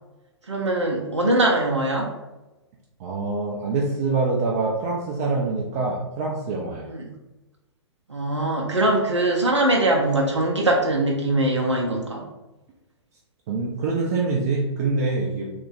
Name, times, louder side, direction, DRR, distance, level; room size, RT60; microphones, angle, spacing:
voice 1, 0.5-2.1 6.9-7.1 8.1-12.3, right 1 dB, 85° right, -1 dB, 0.5 m, -22 dB
voice 2, 3.0-6.9 13.5-15.5, right 3 dB, 35° right, -2 dB, 0.4 m, -25 dB
3.1 x 2.1 x 3.7 m, 1.1 s
figure-of-eight pair, 115°, 15 cm